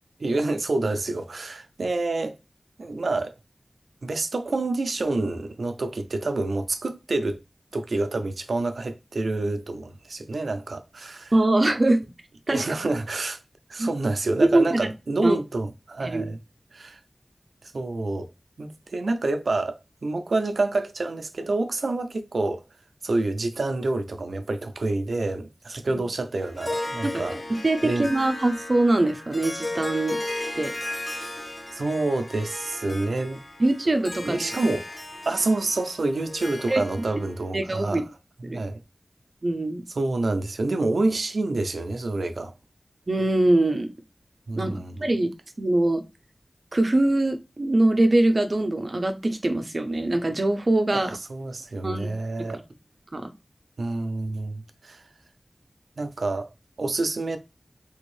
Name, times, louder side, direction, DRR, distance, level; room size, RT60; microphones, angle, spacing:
voice 1, 0.2-2.4 2.8-3.3 4.0-7.4 7.7-11.3 12.5-13.4 13.7-16.4 16.7-17.0 17.6-18.3 18.6-22.6 23.0-27.4 27.8-28.1 31.7-33.4 33.8-34.0 34.2-34.9 35.3-38.1 38.5-38.8 39.9-42.5 44.5-45.1 50.9-52.6 53.8-55.0 56.0-56.5 56.8-57.4, right 2 dB, 90° right, 0.5 m, -27 dB
voice 2, 11.3-12.0 12.5-12.6 13.8-13.9 14.5-14.9 15.2-15.4 16.0-16.3 25.9-26.0 27.0-30.2 30.6-30.7 32.8-33.0 33.6-34.5 36.7-36.8 37.5-38.0 38.4-38.6 39.4-39.8 43.1-43.9 44.6-45.3 45.6-46.0 46.7-51.2 51.8-52.1 52.4-52.6 53.1-53.3, right 2 dB, 50° right, 0.6 m, -23 dB
Harp, 26.4-37.3, left 1 dB, 45° left, 0.9 m, -35 dB
3.6 x 2.6 x 3.1 m
wide cardioid pair, 65°, 0 cm